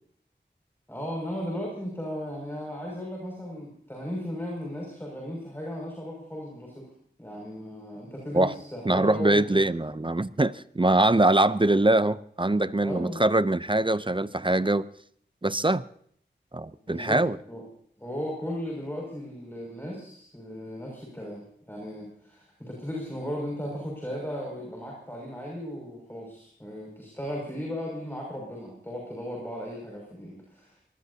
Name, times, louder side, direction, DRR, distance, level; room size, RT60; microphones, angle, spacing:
voice 1, 0.9-6.8 7.2-9.6 12.8-13.2 16.9-17.6 18.0-30.8, equal, 10° left, 6.3 m, -36 dB
voice 2, 8.9-14.9 15.4-15.8 16.5-17.4, right 2 dB, 25° right, 0.6 m, -23 dB
23.0 x 19.5 x 2.8 m
wide cardioid pair, 45°, 19 cm